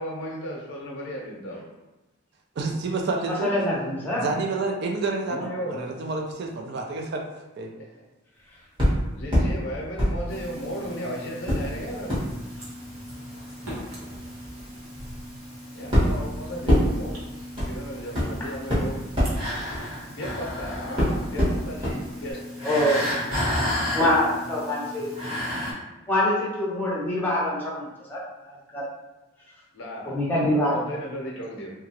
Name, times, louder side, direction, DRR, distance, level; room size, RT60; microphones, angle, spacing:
voice 1, 0.0-1.7 5.2-5.9 9.1-12.2 15.7-17.2 17.6-19.0 20.1-22.4 29.7-30.4 30.7-31.7, equal, 60° left, -2 dB, 0.6 m, -35 dB
voice 2, 2.6-3.5 4.1-7.2 7.6-7.7, right 3 dB, 50° right, 3 dB, 0.3 m, -29 dB
voice 3, 3.4-4.2 22.6-23.0 23.9-25.1 26.1-28.2 28.5-28.9 30.1-30.7, left 1 dB, 10° left, -6 dB, 0.7 m, -24 dB
sound 1, 8.8-9.5 10.0-10.9 11.4-20.5 21.0-22.0 22.3-22.4, equal, 25° right, 1.1 m, -26 dB
sound 2, 10.3-25.7, left 1 dB, 80° right, 1.0 m, -34 dB
2.8 x 2.3 x 2.8 m, 1.1 s
head